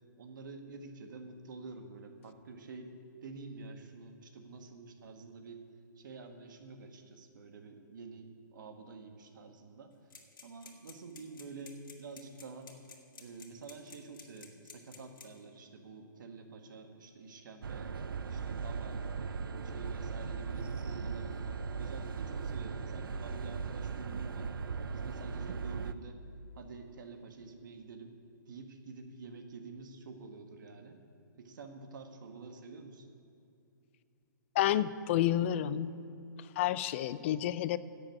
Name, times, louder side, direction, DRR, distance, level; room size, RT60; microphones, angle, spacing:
voice 1, 0.2-2.9 3.2-5.6 6.0-9.9 10.4-12.8 13.2-19.1 19.6-21.5 21.8-24.5 24.9-26.2 26.5-28.2 28.5-31.0 31.4-33.1, right 4 dB, 65° right, 5 dB, 1.6 m, -48 dB
sound 1, 10.1-15.4, left 6 dB, 75° left, 2.1 m, -52 dB
sound 2, 17.6-25.9, right 5 dB, 85° right, 0.6 m, -38 dB
voice 2, 34.6-35.9 36.6-37.8, left 12 dB, 35° left, 16 dB, 0.4 m, -29 dB
10.5 x 7.8 x 9.7 m, 2.6 s
hypercardioid pair, 150°, 11 cm